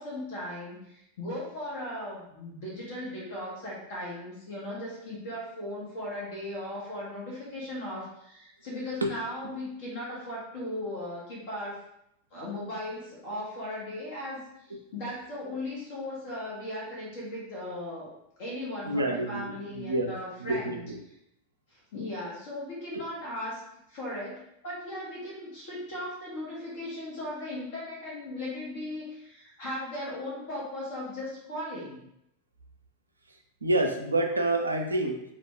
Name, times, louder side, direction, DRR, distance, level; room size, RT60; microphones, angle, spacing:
voice 1, 0.0-11.8 12.3-18.1 18.4-20.8 21.7-23.6 23.9-32.0, left 1 dB, 50° left, -5 dB, 1.0 m, -37 dB
voice 2, 18.9-20.1 20.4-21.0 33.6-35.2, right 1 dB, 80° right, 3 dB, 0.4 m, -28 dB
2.4 x 2.2 x 3.6 m, 0.78 s
figure-of-eight pair, 90°, 0 cm